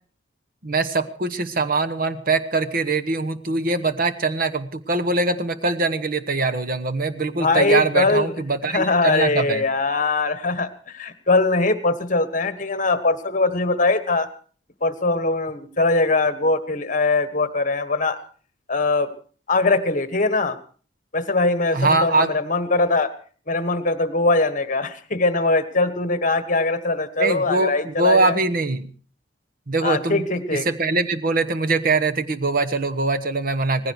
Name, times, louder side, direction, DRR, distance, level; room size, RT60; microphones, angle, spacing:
voice 1, 0.6-9.6 21.7-22.3 27.2-28.9 29.7-30.2 30.5-33.9, right 3 dB, 50° right, 9 dB, 1.2 m, -22 dB
voice 2, 7.4-8.3 8.7-14.3 14.8-18.2 18.7-19.1 19.5-20.6 21.1-23.1 23.5-28.4 29.8-30.7, left 3 dB, 45° left, 12 dB, 1.4 m, -21 dB
18.5 x 16.0 x 4.7 m, 0.41 s
head